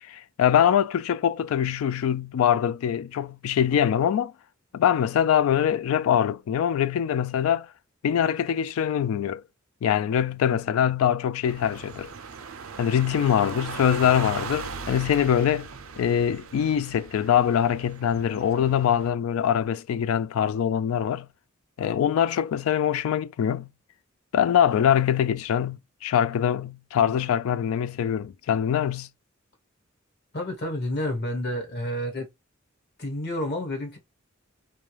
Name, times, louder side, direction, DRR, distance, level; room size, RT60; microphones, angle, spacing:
voice 1, 0.1-4.3 4.7-7.7 8.0-9.4 9.8-12.1 12.8-15.7 16.0-21.3 21.8-23.7 24.3-29.1, left 9 dB, 90° left, 0.3 m, -23 dB
sound 1, 11.4-19.1, right 5 dB, 85° right, 0.4 m, -39 dB
voice 2, 30.3-32.3 33.0-34.0, left 1 dB, 55° left, 1.1 m, -29 dB
2.3 x 2.2 x 3.1 m
head